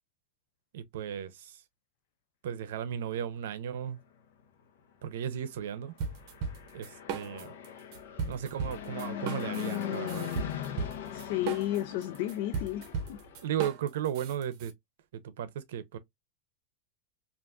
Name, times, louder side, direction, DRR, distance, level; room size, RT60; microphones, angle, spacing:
voice 1, 0.7-1.6 2.4-4.0 5.0-6.0 6.7-7.5 8.2-10.3 13.4-14.7 15.1-16.0, right 9 dB, 80° right, 0.6 m, -35 dB
sound 1, 6.0-7.7 7.9-14.7, right 5 dB, 45° right, 0.7 m, -36 dB
Fixed-wing aircraft airplane, 6.1-13.5, left 10 dB, 75° left, 0.7 m, -39 dB
voice 2, 11.1-13.2, left 14 dB, 55° left, 0.3 m, -33 dB
3.5 x 2.5 x 2.5 m
supercardioid pair, 165°, 0 cm